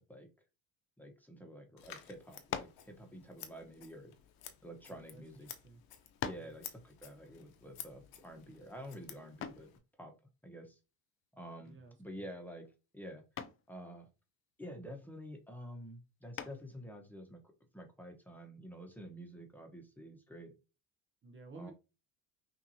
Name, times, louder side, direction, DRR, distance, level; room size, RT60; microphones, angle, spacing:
voice 1, 1.0-4.2 4.6-5.5 6.2-9.7 10.0-10.1 10.4-10.8 11.3-12.7 12.9-13.2 13.7-14.1 14.6-17.4 17.7-20.5 21.5-21.7, equal, 5° left, 1.0 m, -49 dB
Scissors, 1.8-9.8, left 10 dB, 65° left, 0.9 m, -53 dB
sound 1, 2.5-2.9 3.8-5.0 5.7-5.8 6.2-6.6 9.4-9.7 11.6-12.0 12.4-12.8 13.4-13.7 16.4-16.8, left 8 dB, 35° left, 0.4 m, -42 dB
voice 2, 4.9-5.8 6.4-6.6 11.6-12.2 21.2-21.7, right 4 dB, 30° right, 0.7 m, -54 dB
5.7 x 2.7 x 2.8 m
cardioid pair, 120°, 39 cm